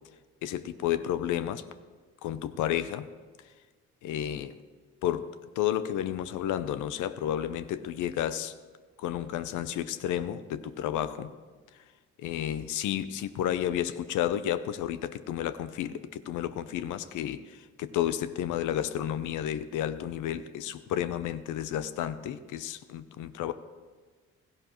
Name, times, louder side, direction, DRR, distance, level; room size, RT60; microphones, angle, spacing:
voice 1, 0.4-1.6 2.2-3.1 4.0-4.6 5.0-5.3 5.6-8.5 9.0-11.3 12.2-23.5, left 11 dB, 85° left, 12 dB, 0.6 m, -31 dB
16.5 x 14.5 x 3.0 m, 1.4 s
cardioid pair, 90°, 30 cm